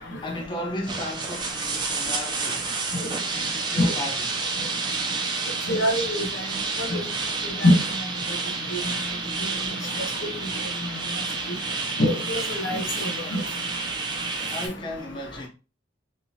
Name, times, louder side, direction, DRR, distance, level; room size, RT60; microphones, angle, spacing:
voice 1, 0.0-2.8 3.3-4.3 14.5-15.5, left 1 dB, 25° left, 0.6 m, -35 dB
sound 1, 0.9-14.7, right 4 dB, 25° right, 0.5 m, -30 dB
voice 2, 5.7-6.2 6.9-7.0 7.6-7.8 12.0-12.8 13.3-13.4, left 1 dB, 85° left, 0.8 m, -21 dB
3.5 x 2.6 x 2.7 m
head